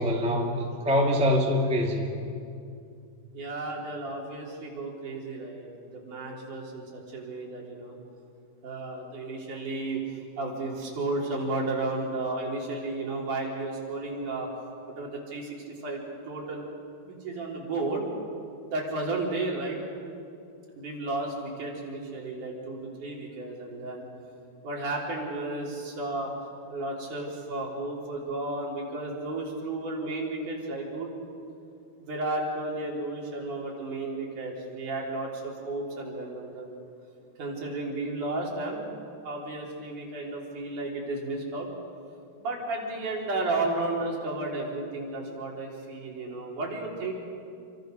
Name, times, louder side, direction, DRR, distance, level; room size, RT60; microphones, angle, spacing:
voice 1, 0.0-2.1, equal, ahead, 0 dB, 1.7 m, -24 dB
voice 2, 3.3-8.0 8.6-10.0 10.4-14.5 14.9-16.7 17.1-18.1 18.7-19.8 20.8-24.0 24.6-26.3 26.7-31.1 32.0-36.8 37.4-38.9 39.2-41.7 42.4-47.1, right 2 dB, 55° right, -2 dB, 5.2 m, -33 dB
28.5 x 25.0 x 6.6 m, 2.5 s
omnidirectional pair, 4.5 m